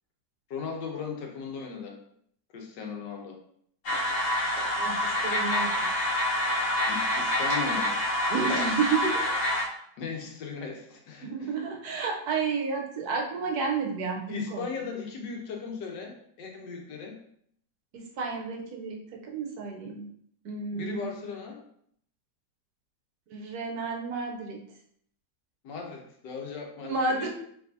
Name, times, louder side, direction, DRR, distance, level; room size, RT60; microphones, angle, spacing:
voice 1, 0.5-2.0 2.5-3.4 6.9-7.9 10.0-11.5 14.3-17.2 20.8-21.6 25.6-27.3, left 5 dB, 90° left, 1 dB, 1.5 m, -37 dB
sound 1, 3.8-9.6, left 1 dB, 50° left, 1.3 m, -27 dB
voice 2, 4.8-5.7 8.3-9.3 11.2-14.7 17.9-20.1 20.4-21.1 23.3-24.6 26.8-27.3, right 4 dB, 70° right, 1 dB, 1.1 m, -31 dB
4.8 x 3.2 x 2.6 m, 0.68 s
omnidirectional pair, 1.8 m